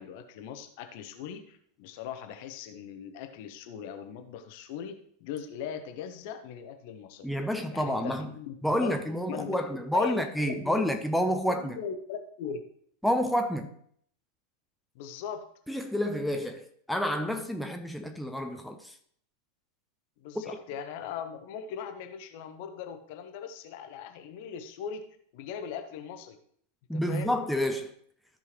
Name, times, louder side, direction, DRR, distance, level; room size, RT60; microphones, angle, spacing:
voice 1, 0.0-4.9 5.2-7.3 7.7-8.9 9.3-10.9 11.5-12.6 14.9-15.5 20.2-25.0 25.3-26.4 26.9-27.3, left 7 dB, 50° left, 1.0 m, -39 dB
voice 2, 7.2-8.3 8.6-11.8 13.0-13.7 15.7-18.9 26.9-27.9, equal, ahead, 0.7 m, -29 dB
14.0 x 5.5 x 3.1 m
figure-of-eight pair, 90°, 0 cm